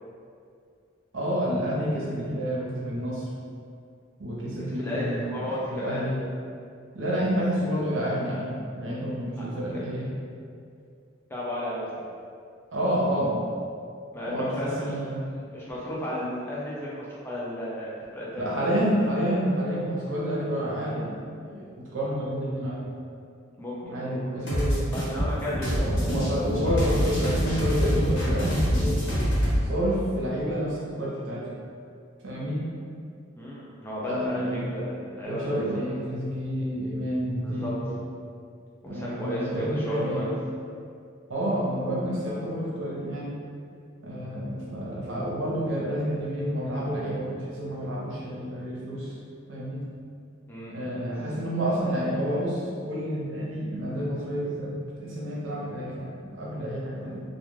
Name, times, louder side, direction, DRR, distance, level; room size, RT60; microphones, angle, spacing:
voice 1, 1.1-3.2 4.2-5.2 5.7-6.2 6.9-10.1 12.7-13.4 14.2-15.2 18.4-22.8 23.8-24.9 25.9-29.0 29.6-31.5 32.2-32.6 34.0-34.6 35.2-37.9 38.9-40.3 41.3-43.4 44.0-49.1 49.5-49.8 50.7-57.2, equal, 70° right, -5 dB, 0.7 m, -29 dB
voice 2, 4.7-6.1 9.4-9.5 11.3-12.1 14.1-15.0 15.5-18.6 23.6-24.1 24.5-26.1 33.4-35.6 37.4-37.7 38.8-40.3 50.5-50.9, equal, 10° left, -7 dB, 0.4 m, -33 dB
sound 1, 24.5-29.6, equal, 70° left, 1.0 m, -25 dB
2.2 x 2.2 x 3.1 m, 2.4 s
head